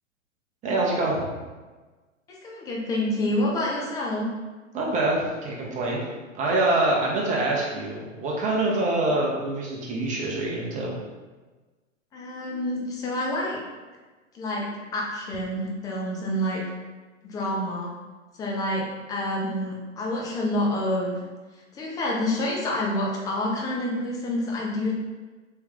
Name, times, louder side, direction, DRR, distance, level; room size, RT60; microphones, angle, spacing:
voice 1, 0.6-1.2 4.7-6.0 6.3-10.9, right 2 dB, 20° right, -3 dB, 0.8 m, -25 dB
voice 2, 2.4-4.3 12.1-13.6 14.3-14.7 14.9-16.6 17.2-17.9 18.4-18.8 19.1-21.2 21.7-24.9, left 1 dB, 10° left, -2 dB, 0.4 m, -28 dB
3.3 x 3.0 x 3.5 m, 1.3 s
hypercardioid pair, 120°, 39 cm